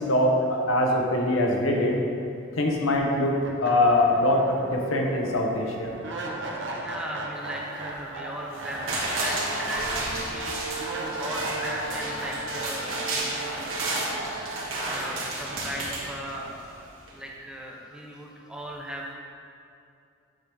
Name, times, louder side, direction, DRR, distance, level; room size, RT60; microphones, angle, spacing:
voice 1, 0.0-2.0 2.6-3.3 3.6-5.9, left 1 dB, 85° left, 0 dB, 0.9 m, -23 dB
sound 1, 2.9-3.0 3.4-16.5, right 2 dB, 60° right, 0.7 m, -36 dB
voice 2, 6.8-10.5 10.9-13.8 14.9-19.1, right 1 dB, 5° right, -2 dB, 0.5 m, -38 dB
sound 2, 8.5-16.7 17.1-17.2, right 2 dB, 80° right, 1.4 m, -32 dB
7.2 x 3.4 x 5.2 m, 2.5 s
head